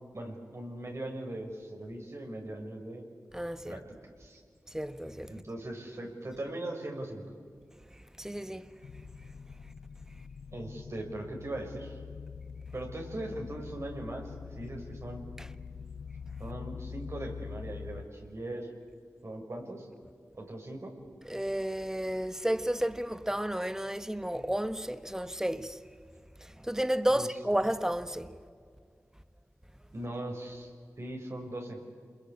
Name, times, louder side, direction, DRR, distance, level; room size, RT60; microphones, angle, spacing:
voice 1, 0.1-3.1 3.7-4.4 5.3-7.3 10.5-12.0 12.7-15.2 16.4-18.7 19.2-19.9 20.3-20.9 27.1-27.3 29.9-30.7 31.0-31.8, right 1 dB, 50° right, 5.8 m, -40 dB
voice 2, 3.3-3.8 4.7-5.3 8.2-8.7 15.4-15.5 21.2-25.8 26.4-28.4, right 1 dB, 10° right, 1.3 m, -32 dB
sound 1, 8.8-18.1, left 6 dB, 75° left, 0.6 m, -44 dB
27.5 x 22.0 x 8.5 m
cardioid pair, 50°, 6 cm